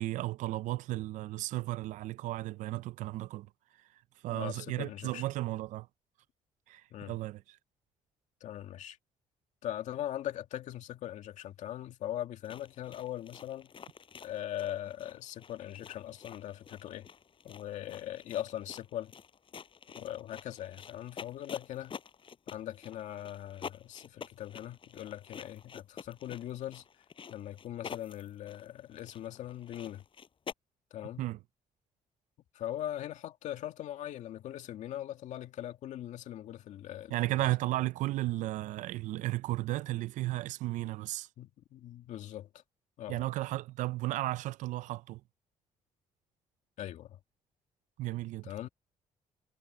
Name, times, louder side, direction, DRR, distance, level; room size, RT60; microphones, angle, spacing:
voice 1, 0.0-3.5 4.2-5.9 6.7-7.4 31.2-31.4 37.1-41.3 43.1-45.2 48.0-48.5, right 17 dB, 80° right, 0.6 m, -34 dB
voice 2, 4.3-5.3 6.9-7.1 8.4-9.0 9.6-13.7 14.2-17.1 17.4-19.1 20.0-21.9 22.5-26.8 27.3-30.0 30.9-31.3 32.5-37.4 41.4-42.5 43.0-43.2 46.8-47.2 48.4-48.7, left 12 dB, 70° left, 2.1 m, -40 dB
sound 1, 12.4-30.5, left 6 dB, 45° left, 5.4 m, -49 dB
cardioid pair, 95°, 13 cm